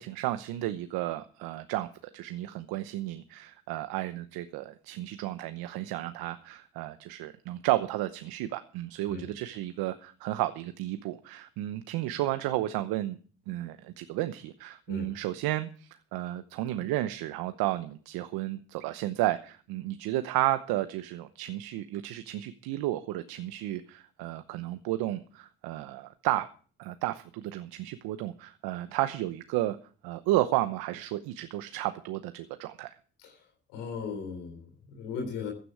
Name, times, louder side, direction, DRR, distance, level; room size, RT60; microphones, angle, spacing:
voice 1, 0.0-13.2 13.5-26.5 26.8-29.8 30.0-33.0, right 15 dB, 80° right, 11 dB, 0.9 m, -32 dB
voice 2, 33.7-35.5, left 5 dB, 85° left, 2 dB, 3.9 m, -37 dB
15.5 x 11.0 x 4.8 m, 0.40 s
hypercardioid pair, 45°, 36 cm